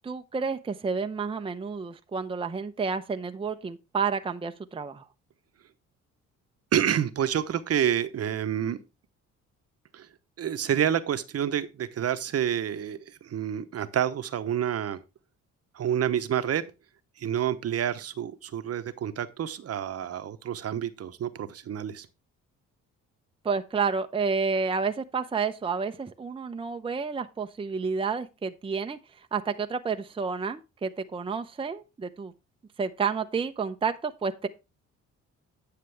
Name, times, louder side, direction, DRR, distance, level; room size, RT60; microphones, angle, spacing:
voice 1, 0.0-5.0 23.4-29.0 29.3-32.3 32.8-34.5, right 5 dB, 20° right, 0.6 m, -30 dB
voice 2, 6.7-8.8 9.9-10.1 10.4-15.0 15.7-16.6 17.2-22.1, right 9 dB, 55° right, 0.9 m, -28 dB
9.6 x 6.6 x 3.4 m
cardioid pair, 90°, 30 cm